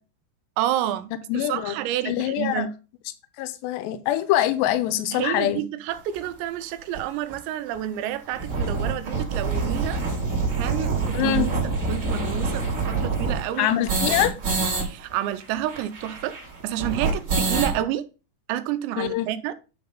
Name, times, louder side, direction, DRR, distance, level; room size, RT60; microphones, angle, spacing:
voice 1, 0.6-2.7 5.1-10.0 10.6-11.5 11.9-13.8 14.5-16.4 16.6-18.0 18.5-19.5, right 12 dB, 85° right, 2.9 m, -29 dB
voice 2, 1.3-1.8 2.1-2.7 3.4-5.6 11.1-11.5 13.6-14.3 19.0-19.3, left 13 dB, 85° left, 2.9 m, -24 dB
sound 1, 6.1-6.2 6.9-7.0 7.3-7.4 7.7-7.8 8.1-14.8 15.1-15.2 15.4-17.8, right 4 dB, 35° right, 3.4 m, -26 dB
10.0 x 3.9 x 5.1 m
omnidirectional pair, 5.1 m